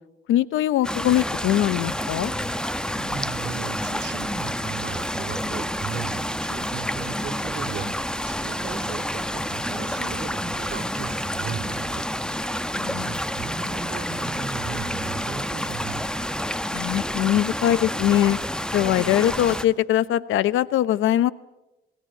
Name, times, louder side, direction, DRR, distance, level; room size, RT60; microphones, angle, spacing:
voice 1, 0.3-2.3 12.7-13.2 16.7-18.4 18.7-21.3, left 12 dB, 85° left, 17 dB, 1.0 m, -22 dB
sound 1, 0.8-19.7, equal, 5° left, 1.4 m, -29 dB
voice 2, 2.7-12.0 12.6-16.0, right 6 dB, 65° right, 6 dB, 3.3 m, -36 dB
30.0 x 20.0 x 9.0 m, 0.98 s
cardioid pair, 90°, 20 cm